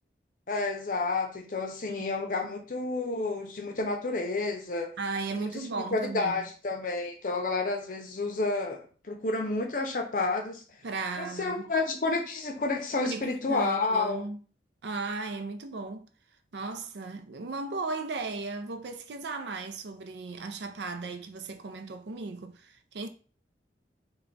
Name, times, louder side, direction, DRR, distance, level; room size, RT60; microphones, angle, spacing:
voice 1, 0.5-4.9 5.3-8.8 9.0-10.6 11.2-14.2, left 3 dB, 50° left, 0.6 m, -30 dB
voice 2, 5.0-6.4 10.8-11.6 13.0-14.4 14.8-16.1 16.5-23.1, right 3 dB, 75° right, 0.4 m, -36 dB
3.3 x 2.3 x 3.9 m
head